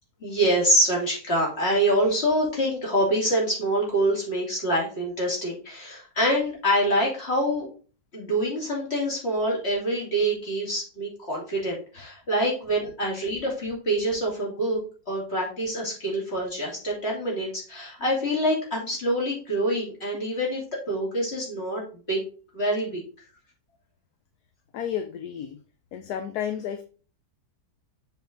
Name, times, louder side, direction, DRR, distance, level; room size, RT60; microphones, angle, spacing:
voice 1, 0.2-7.7 8.1-14.8 15.1-20.6 20.9-21.8 22.1-22.2 22.5-23.0, right 1 dB, 35° left, -3 dB, 3.3 m, -25 dB
voice 2, 24.7-25.6 25.9-26.8, left 9 dB, 70° left, 8 dB, 1.2 m, -31 dB
7.2 x 4.5 x 3.9 m, 0.37 s
omnidirectional pair, 1.8 m